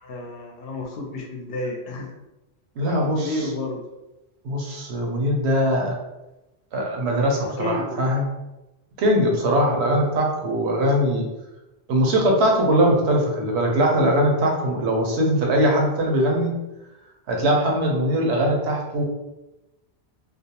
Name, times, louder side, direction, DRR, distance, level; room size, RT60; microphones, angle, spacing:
voice 1, 0.0-2.1 3.0-3.8 7.6-8.2, left 1 dB, 65° left, 1 dB, 0.7 m, -31 dB
voice 2, 2.8-3.5 4.4-6.0 6.7-8.3 9.0-11.2 11.9-16.5 17.3-19.0, equal, 85° right, 1 dB, 0.9 m, -21 dB
2.4 x 2.0 x 2.8 m, 0.99 s
omnidirectional pair, 1.1 m